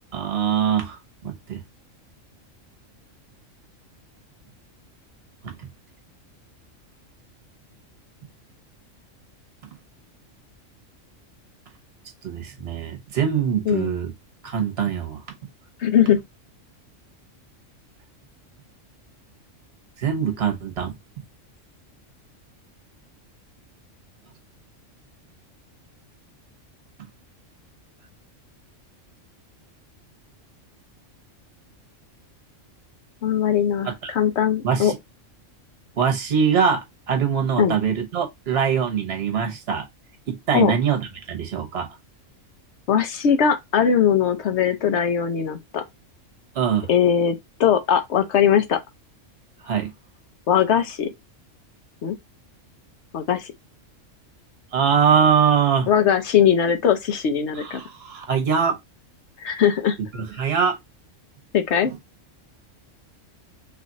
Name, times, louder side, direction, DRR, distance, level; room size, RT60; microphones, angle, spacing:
voice 1, 0.1-1.6 5.4-5.5 12.2-14.1 14.4-15.2 20.0-20.9 33.8-33.9 34.6-34.9 36.0-39.9 40.3-41.9 46.5-46.9 49.6-49.9 54.7-55.9 57.6-58.8 60.1-60.8 61.8-62.0, right 7 dB, 55° right, 1.2 m, -23 dB
voice 2, 15.8-16.2 33.2-34.9 37.6-37.8 40.5-40.7 42.9-45.8 46.9-48.8 50.5-51.1 52.0-52.2 53.1-53.5 55.9-57.8 59.4-60.0 61.5-61.9, left 8 dB, 65° left, 0.9 m, -20 dB
3.2 x 2.4 x 3.9 m
omnidirectional pair, 1.3 m